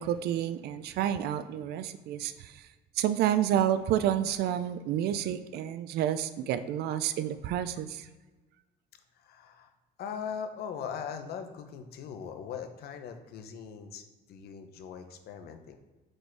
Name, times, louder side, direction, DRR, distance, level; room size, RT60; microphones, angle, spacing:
voice 1, 0.0-2.7 3.0-8.1, right 10 dB, 70° right, 11 dB, 0.4 m, -29 dB
voice 2, 9.1-9.7 10.0-15.8, left 7 dB, 70° left, 7 dB, 0.8 m, -40 dB
5.1 x 4.2 x 4.6 m, 1.2 s
cardioid pair, 110°, 17 cm